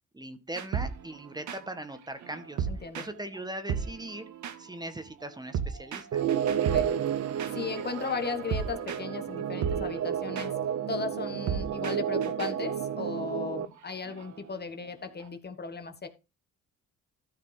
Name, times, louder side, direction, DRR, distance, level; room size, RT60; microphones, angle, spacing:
voice 1, 0.1-4.3 4.6-6.2, right 1 dB, 15° right, 9 dB, 1.8 m, -40 dB
sound 1, 0.6-3.4 3.7-15.3, right 7 dB, 75° right, 1.8 m, -37 dB
voice 2, 2.7-3.0 6.6-6.9 7.5-10.5 10.9-16.1, left 5 dB, 35° left, 6 dB, 1.6 m, -36 dB
sound 2, 6.1-13.7, right 9 dB, 55° right, 0.8 m, -31 dB
13.5 x 5.8 x 5.0 m, 0.29 s
cardioid pair, 90°, 30 cm